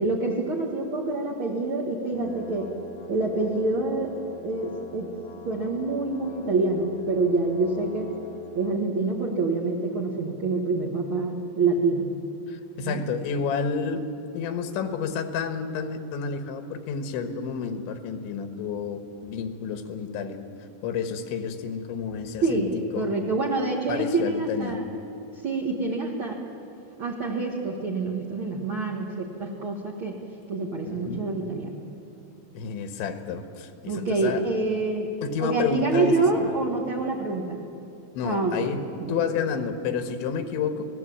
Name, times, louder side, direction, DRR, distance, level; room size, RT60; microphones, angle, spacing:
voice 1, 0.0-2.7 3.1-4.1 4.4-5.1 5.4-8.1 8.5-12.2 12.8-13.0 22.4-24.8 25.4-26.4 27.0-30.2 30.5-31.8 33.9-35.1 35.4-37.7 38.2-38.7 39.0-39.2, right 3 dB, 55° right, -2 dB, 1.5 m, -26 dB
sound 1, 2.1-8.9, left 2 dB, 60° left, 1.9 m, -44 dB
voice 2, 12.5-14.0 14.3-20.4 20.8-23.1 23.9-24.8 30.8-31.3 32.5-34.4 35.2-36.5 38.2-40.9, left 6 dB, 90° left, 8 dB, 3.8 m, -30 dB
27.0 x 18.5 x 8.6 m, 2.7 s
omnidirectional pair, 5.2 m